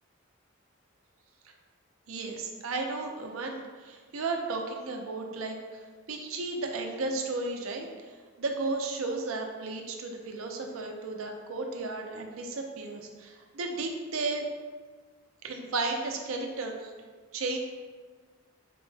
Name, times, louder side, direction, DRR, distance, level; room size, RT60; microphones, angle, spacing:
voice 1, 2.1-5.8 6.1-7.9 8.4-14.4 15.4-16.9 17.3-17.6, right 3 dB, 70° right, 3 dB, 0.5 m, -34 dB
4.3 x 2.1 x 3.2 m, 1.4 s
head